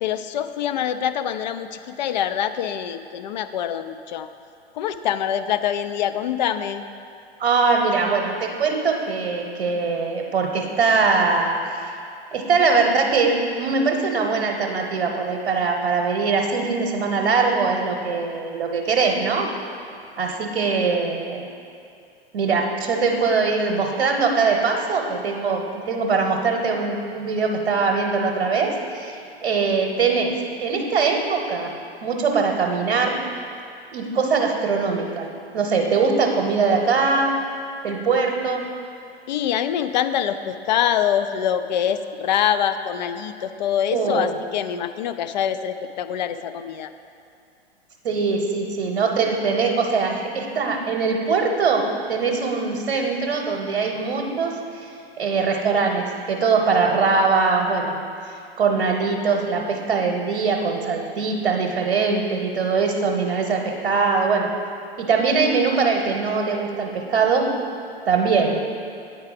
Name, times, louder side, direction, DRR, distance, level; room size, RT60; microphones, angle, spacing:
voice 1, 0.0-4.3 4.7-6.8 39.3-46.9, left 9 dB, 45° left, 11 dB, 0.4 m, -25 dB
voice 2, 7.4-11.9 12.3-19.5 20.2-21.5 22.3-31.7 32.0-33.2 33.9-35.3 35.5-37.3 37.8-38.6 43.9-44.3 48.0-51.8 52.1-58.0 58.6-64.5 65.0-67.5 68.0-68.6, right 4 dB, 60° right, 1 dB, 0.9 m, -22 dB
8.7 x 4.8 x 4.9 m, 2.5 s
figure-of-eight pair, 105°, 32 cm